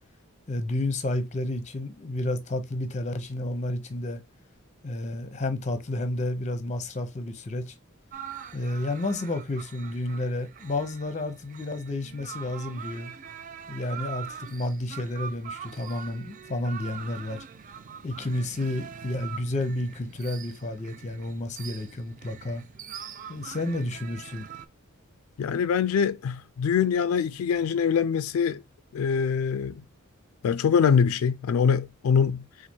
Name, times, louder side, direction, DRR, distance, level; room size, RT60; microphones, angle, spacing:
voice 1, 0.5-4.2 4.8-7.7 8.5-13.1 13.7-17.4 18.0-22.6 23.3-24.5, left 1 dB, 30° left, 0.7 m, -31 dB
sound 1, 8.1-24.7, right 7 dB, 40° right, 0.3 m, -43 dB
voice 2, 25.4-28.6 28.9-29.8 30.4-32.4, left 6 dB, 80° left, 0.3 m, -24 dB
4.1 x 2.5 x 4.5 m
head